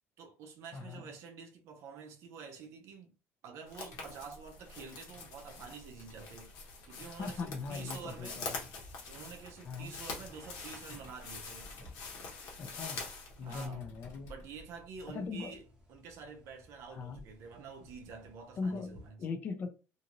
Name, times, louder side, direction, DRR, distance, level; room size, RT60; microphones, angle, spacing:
voice 1, 0.2-3.1 3.4-6.6 6.9-8.5 9.1-11.7 13.4-13.9 14.2-15.6 15.9-19.2, right 5 dB, 60° right, 0.6 m, -48 dB
voice 2, 0.7-1.1 7.2-8.6 9.6-9.9 12.6-13.0 13.4-14.3 15.1-15.6 16.9-17.2 18.6-19.7, left 4 dB, 35° left, 0.5 m, -39 dB
sound 1, 3.7-13.7, left 4 dB, 90° left, 1.1 m, -45 dB
Computer keyboard, 3.8-14.5, left 2 dB, 60° left, 1.3 m, -60 dB
sound 2, 7.0-19.1, left 1 dB, 15° right, 0.9 m, -58 dB
2.6 x 2.5 x 2.9 m
cardioid pair, 165°, 5 cm